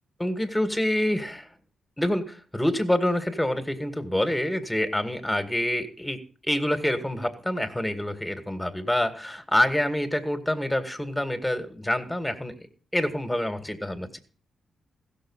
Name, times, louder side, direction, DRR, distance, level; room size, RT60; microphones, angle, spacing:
voice 1, 0.2-1.5 2.0-12.5 12.9-14.2, left 1 dB, 10° left, 8 dB, 2.2 m, -27 dB
16.0 x 6.7 x 6.5 m, 0.41 s
cardioid pair, 65°, 0 cm